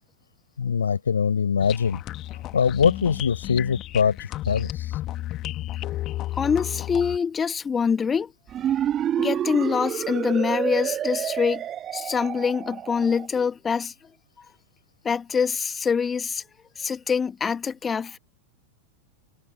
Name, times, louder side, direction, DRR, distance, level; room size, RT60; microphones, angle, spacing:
voice 1, 0.6-2.0 2.5-5.0, left 6 dB, 70° left, 6.8 m, -23 dB
sound 1, 1.6-7.2, left 15 dB, 35° left, 1.9 m, -33 dB
voice 2, 6.3-8.3 9.2-11.6 11.9-14.1 15.0-16.4 16.8-18.2, left 6 dB, 20° left, 2.2 m, -25 dB
sound 2, 8.5-13.3, right 10 dB, 30° right, 2.8 m, -28 dB
figure-of-eight pair, 90°, 0 cm